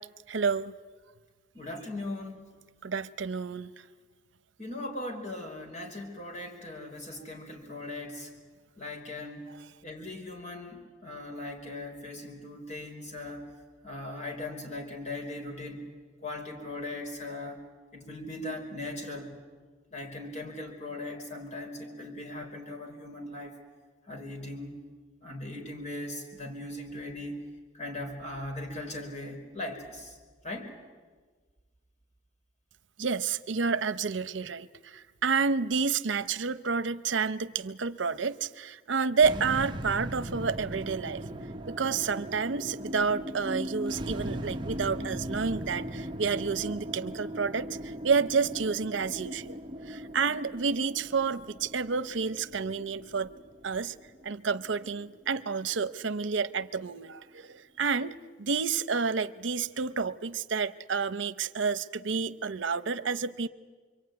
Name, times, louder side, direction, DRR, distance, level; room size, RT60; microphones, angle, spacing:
voice 1, 0.3-0.7 2.8-3.7 33.0-41.2 41.7-49.6 49.9-53.3 53.6-53.9 54.2-63.5, right 5 dB, 85° right, 14 dB, 0.7 m, -30 dB
voice 2, 1.5-2.5 4.6-8.3 8.8-9.5 9.8-13.5 13.8-15.9 16.2-17.6 17.9-19.4 19.9-23.5 24.1-24.8 25.2-27.5 27.7-30.2 30.4-30.7, left 2 dB, 40° left, 2 dB, 5.2 m, -39 dB
sound 1, 39.2-55.6, equal, 25° right, 1.0 m, -39 dB
26.5 x 23.5 x 9.5 m, 1.4 s
head